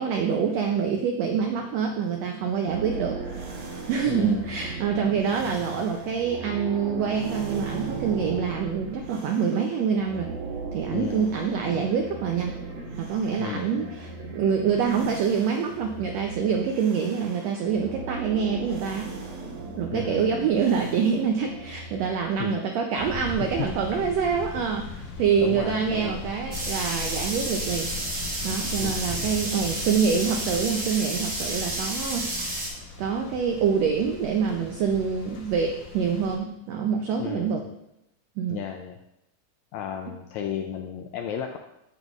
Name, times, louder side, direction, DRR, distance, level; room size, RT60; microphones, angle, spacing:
voice 1, 0.0-3.2 3.9-10.3 10.7-12.6 13.0-19.1 19.8-27.9 28.4-32.3 33.0-37.6 38.4-38.6, right 6 dB, 85° right, 3 dB, 1.5 m, -26 dB
sound 1, 2.7-9.7 10.0-22.5, right 4 dB, 65° right, 2.4 m, -37 dB
voice 2, 4.1-4.5 10.9-11.3 11.7-11.9 13.4-14.0 19.9-20.3 22.4-22.6 23.5-24.0 24.6-24.7 25.4-26.2 28.8-29.1 37.2-37.5 38.5-39.0 39.7-41.6, left 9 dB, 85° left, 4 dB, 1.6 m, -34 dB
sound 2, 23.0-36.4, left 3 dB, 60° left, 2.4 m, -39 dB
sound 3, 26.5-32.7, right 1 dB, 40° right, 1.4 m, -31 dB
9.0 x 8.0 x 2.4 m, 0.84 s
omnidirectional pair, 3.7 m